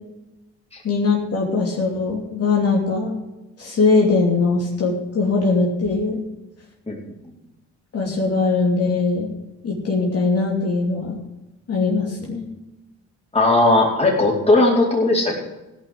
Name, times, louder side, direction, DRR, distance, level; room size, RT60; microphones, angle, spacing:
voice 1, 0.8-3.2 3.6-6.2 7.9-9.3 9.6-11.2 11.7-12.5, left 4 dB, 55° left, -2 dB, 2.9 m, -21 dB
voice 2, 13.3-15.4, left 2 dB, 20° left, -2 dB, 4.2 m, -17 dB
16.0 x 5.9 x 7.9 m, 1.0 s
cardioid pair, 90°, 30 cm